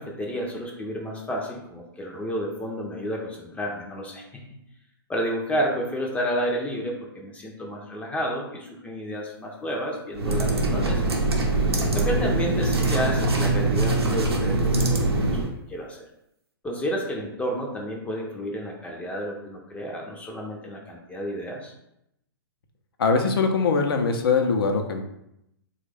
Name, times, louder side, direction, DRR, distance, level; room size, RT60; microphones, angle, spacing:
voice 1, 0.0-4.4 5.1-11.1 11.9-15.1 15.7-16.1 16.6-21.7, equal, 10° left, 0 dB, 0.5 m, -31 dB
sound 1, 10.1-15.5, right 2 dB, 90° right, 0.6 m, -23 dB
voice 2, 23.0-25.0, left 4 dB, 70° left, 5 dB, 0.6 m, -22 dB
3.3 x 2.3 x 3.2 m, 0.81 s
hypercardioid pair, 115°, 13 cm